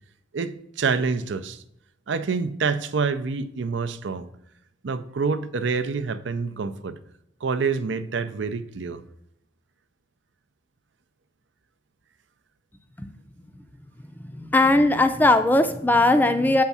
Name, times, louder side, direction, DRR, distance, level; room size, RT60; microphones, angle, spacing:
voice 1, 0.3-1.6 2.1-4.3 4.8-7.0 7.4-9.0, right 5 dB, 75° right, 12 dB, 0.5 m, -27 dB
voice 2, 14.2-16.6, left 2 dB, 10° left, 8 dB, 0.4 m, -19 dB
8.3 x 3.5 x 5.5 m, 0.76 s
head